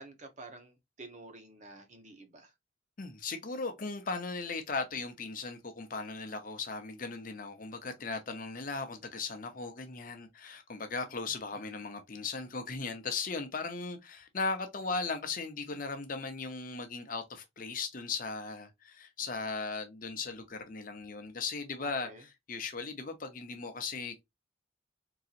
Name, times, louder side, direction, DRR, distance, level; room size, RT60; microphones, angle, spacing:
voice 1, 0.0-2.5 11.5-11.6 21.8-22.2, right 2 dB, 40° right, 0.8 m, -50 dB
voice 2, 3.0-24.2, left 4 dB, 45° left, 0.8 m, -37 dB
3.9 x 2.9 x 2.4 m
head